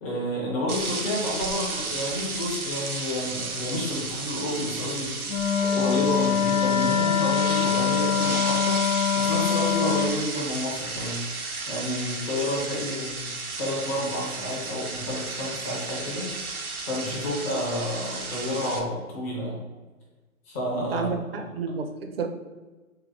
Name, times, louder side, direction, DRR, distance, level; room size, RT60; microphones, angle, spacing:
voice 1, 0.0-5.1 5.6-8.8 9.1-11.2 11.7-13.3 13.6-16.3 16.9-19.6 20.5-21.4, left 1 dB, 10° left, -5 dB, 0.5 m, -30 dB
sound 1, 0.7-18.8, right 3 dB, 90° right, 0.8 m, -33 dB
Wind instrument woodwind instrument, 5.3-10.2, left 8 dB, 75° left, 0.7 m, -24 dB
voice 2, 20.7-22.3, right 5 dB, 45° right, 6 dB, 0.6 m, -31 dB
3.9 x 3.2 x 3.6 m, 1.2 s
figure-of-eight pair, 135°, 42 cm